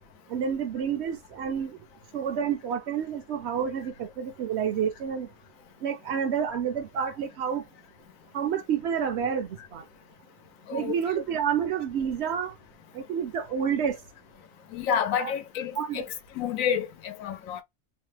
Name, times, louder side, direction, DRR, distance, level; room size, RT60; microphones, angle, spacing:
voice 1, 0.3-1.8 2.1-5.3 5.8-7.6 8.3-9.8 10.7-12.5 12.9-14.0 15.2-15.3 15.8-16.0, right 7 dB, 65° right, 0.7 m, -29 dB
voice 2, 10.7-11.0 14.7-17.6, left 8 dB, 85° left, 1.0 m, -29 dB
2.9 x 2.0 x 3.1 m
omnidirectional pair, 1.4 m